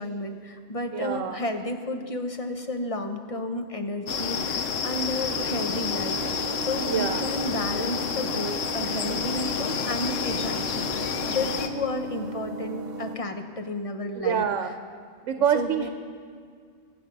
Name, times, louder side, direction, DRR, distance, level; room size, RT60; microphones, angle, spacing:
voice 1, 0.0-14.4 15.5-15.9, left 2 dB, 30° left, 6 dB, 0.9 m, -32 dB
voice 2, 0.9-1.4 6.8-7.2 14.2-14.7 15.2-15.9, right 8 dB, 90° right, 8 dB, 1.0 m, -26 dB
Sound of the mountain near the river, 4.1-11.7, left 6 dB, 85° left, 1.2 m, -29 dB
sound 1, 5.3-13.2, right 4 dB, 40° right, 0.9 m, -37 dB
23.5 x 8.0 x 5.3 m, 2.1 s
omnidirectional pair, 1.2 m